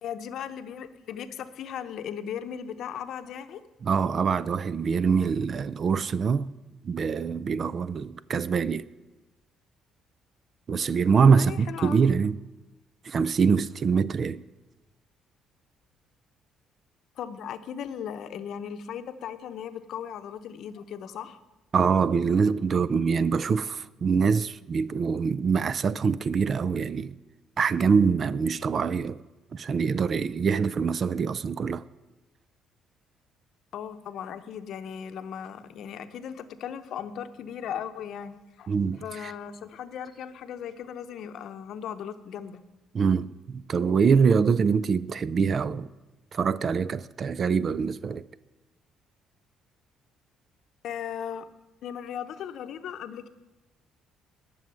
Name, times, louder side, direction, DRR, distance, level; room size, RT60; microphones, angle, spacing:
voice 1, 0.0-3.6 11.3-12.0 17.2-21.4 33.7-38.7 39.0-42.6 50.8-51.5 51.8-53.3, left 8 dB, 65° left, 0.8 m, -37 dB
voice 2, 3.8-6.5 6.8-8.8 10.7-12.4 13.0-14.4 21.7-27.2 27.6-29.2 29.5-31.9 38.7-39.3 42.9-45.9 46.3-48.2, right 5 dB, 40° right, 0.4 m, -24 dB
11.0 x 6.3 x 8.9 m
cardioid pair, 115°, 0 cm